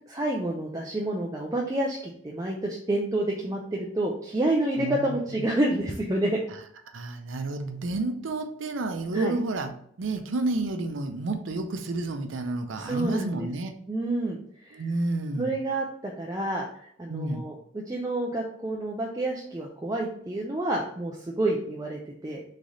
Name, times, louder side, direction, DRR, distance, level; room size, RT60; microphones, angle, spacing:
voice 1, 0.1-6.4 9.1-9.3 12.7-13.5 13.9-14.8 15.4-22.4, right 1 dB, 15° right, -1 dB, 0.4 m, -29 dB
voice 2, 4.8-5.4 6.9-9.7 10.0-13.7 14.7-15.5 17.1-17.4, right 2 dB, 75° right, 7 dB, 0.6 m, -30 dB
3.7 x 3.3 x 3.9 m, 0.66 s
head